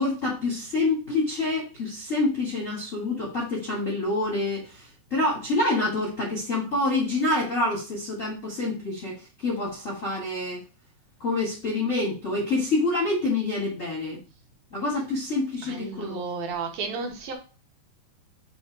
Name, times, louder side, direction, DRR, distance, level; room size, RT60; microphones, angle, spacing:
voice 1, 0.0-10.6 11.2-14.2 14.7-16.2, left 2 dB, 65° left, -4 dB, 0.7 m, -27 dB
voice 2, 15.6-17.3, right 4 dB, 70° right, 2 dB, 2.7 m, -32 dB
7.1 x 3.5 x 4.5 m, 0.34 s
omnidirectional pair, 4.7 m